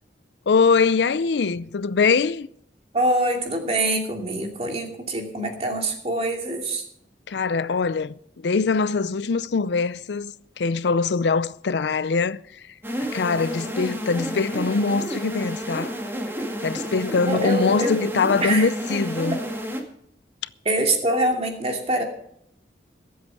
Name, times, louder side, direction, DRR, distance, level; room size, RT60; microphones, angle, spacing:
voice 1, 0.5-2.5 7.3-12.4 13.1-16.0 16.6-19.4, left 4 dB, 80° left, 0.5 m, -22 dB
voice 2, 2.9-6.8 17.2-18.1 18.4-18.7 20.6-22.0, right 1 dB, 35° right, 2.6 m, -24 dB
sound 1, 12.8-19.8, equal, 15° right, 2.0 m, -30 dB
22.5 x 7.9 x 4.7 m
head